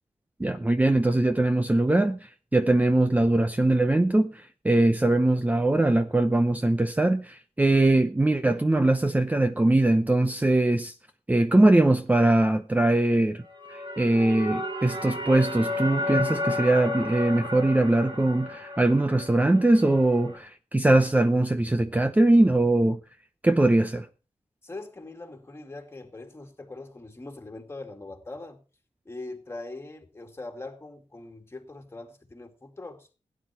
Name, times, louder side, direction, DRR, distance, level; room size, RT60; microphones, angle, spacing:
voice 1, 0.4-10.9 11.3-13.4 13.7-23.0 23.4-24.1, right 2 dB, 15° right, 0.8 m, -22 dB
sound 1, 13.4-20.4, left 2 dB, 50° right, 3.5 m, -33 dB
voice 2, 24.6-28.6 29.0-33.1, left 2 dB, 25° left, 2.5 m, -41 dB
17.0 x 9.7 x 4.4 m
wide cardioid pair, 140°, 11 cm